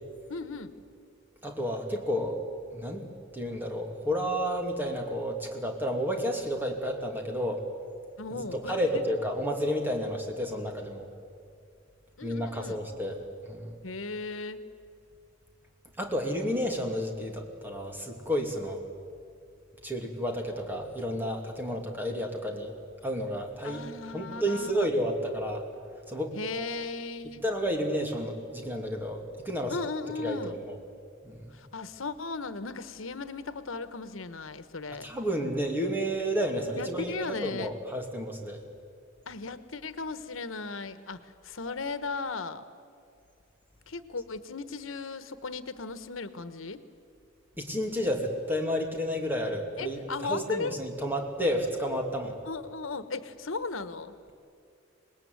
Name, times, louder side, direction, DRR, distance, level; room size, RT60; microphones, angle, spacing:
voice 1, 0.3-0.7 8.2-9.0 12.2-12.8 13.8-14.6 23.6-24.9 26.3-27.4 29.7-30.6 31.5-35.1 36.8-37.7 39.3-42.6 43.9-46.8 49.8-50.8 52.4-54.1, left 4 dB, 90° left, 12 dB, 1.2 m, -36 dB
voice 2, 1.4-2.4 2.7-3.0 3.3-7.6 8.3-11.0 12.2-13.2 13.5-13.7 16.0-18.8 19.8-22.7 23.0-23.8 24.1-25.7 26.1-26.4 27.4-29.8 30.2-30.7 31.2-31.5 35.0-38.6 47.6-52.4, equal, 10° right, 2 dB, 2.8 m, -31 dB
26.0 x 20.0 x 9.6 m, 2.4 s
head